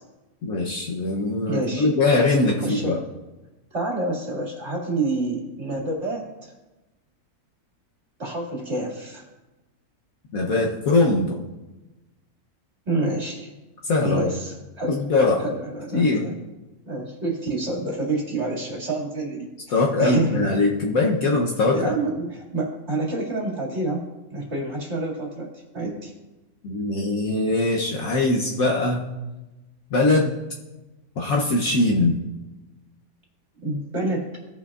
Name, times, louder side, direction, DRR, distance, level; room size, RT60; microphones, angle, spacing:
voice 1, 0.4-3.0 10.3-11.4 13.8-14.3 14.9-15.4 15.9-16.3 19.7-21.9 26.6-29.0 29.9-30.4 31.2-32.2, left 2 dB, 65° left, -1 dB, 1.2 m, -21 dB
voice 2, 1.5-1.9 2.6-3.0 3.7-6.5 8.2-9.3 12.9-13.5 14.0-14.9 15.4-16.3 16.9-19.5 20.0-20.6 21.7-25.5 25.7-26.1 33.6-34.3, right 2 dB, 45° right, -2 dB, 2.4 m, -28 dB
17.0 x 6.0 x 2.4 m, 1.1 s
omnidirectional pair, 1.6 m